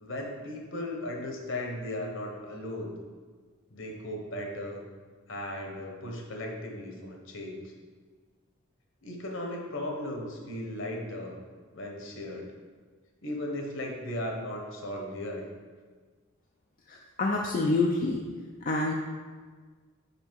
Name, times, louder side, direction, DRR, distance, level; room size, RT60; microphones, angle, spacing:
voice 1, 0.0-3.0 3.7-4.8 5.3-7.7 9.0-11.3 11.7-12.5 13.2-15.4, left 1 dB, 60° left, 1 dB, 1.1 m, -36 dB
voice 2, 16.9-18.2 18.7-18.9, left 2 dB, 40° left, -1 dB, 0.4 m, -27 dB
5.5 x 5.1 x 4.6 m, 1.5 s
head